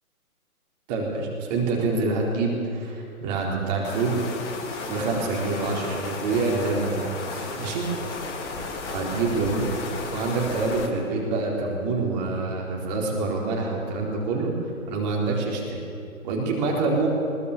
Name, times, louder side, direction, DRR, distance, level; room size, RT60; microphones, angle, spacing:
voice 1, 0.9-4.2 4.8-7.8 8.9-9.7 10.1-14.5 14.9-15.8 16.2-17.1, right 3 dB, 30° right, -2 dB, 4.2 m, -26 dB
sound 1, 3.8-10.9, left 3 dB, 20° left, 1.9 m, -34 dB
21.5 x 21.0 x 7.0 m, 2.5 s
figure-of-eight pair, 135°, 44 cm